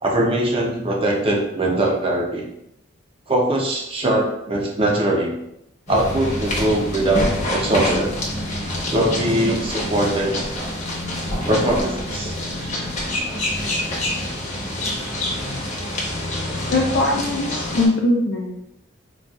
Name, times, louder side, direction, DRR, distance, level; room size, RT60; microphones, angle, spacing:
voice 1, 0.0-2.4 3.3-5.3 5.9-8.2 8.9-10.3 11.5-12.3, right 1 dB, 30° right, -1 dB, 0.6 m, -21 dB
sound 1, 5.9-17.9, left 1 dB, 35° left, 0.8 m, -26 dB
voice 2, 16.7-18.5, left 2 dB, 65° left, -2 dB, 0.4 m, -20 dB
4.0 x 2.4 x 2.3 m, 0.82 s
head